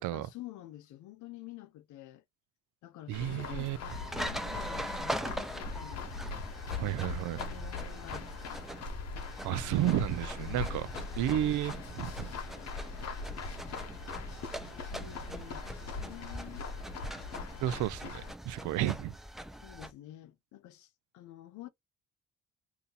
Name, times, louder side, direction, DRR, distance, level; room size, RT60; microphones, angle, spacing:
voice 1, 0.1-2.2 2.8-6.2 6.8-8.7 10.3-12.7 14.7-16.7 18.5-18.6 19.6-21.7, left 14 dB, 90° left, 0.7 m, -50 dB
sound 1, 3.1-18.3, left 4 dB, 60° left, 1.1 m, -41 dB
voice 2, 3.1-3.8 6.8-7.4 9.4-10.9 11.2-12.3 17.6-19.1, right 13 dB, 85° right, 0.5 m, -32 dB
sound 2, 3.9-19.9, equal, ahead, 0.5 m, -42 dB
2.8 x 2.6 x 3.9 m
cardioid pair, 105°, 29 cm